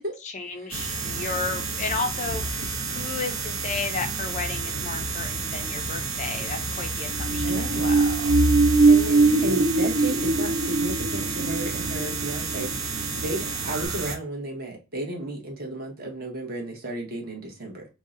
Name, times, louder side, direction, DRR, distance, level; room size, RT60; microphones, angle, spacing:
voice 1, 0.0-8.3, left 4 dB, 35° left, 0.3 m, -33 dB
sound 1, 0.7-14.2, right 2 dB, 80° right, 0.7 m, -30 dB
sound 2, 7.1-13.5 13.8-13.9, right 3 dB, 60° right, 1.1 m, -22 dB
voice 2, 7.3-7.9 8.9-17.9, right 1 dB, 45° right, 0.9 m, -33 dB
2.7 x 2.1 x 3.6 m
head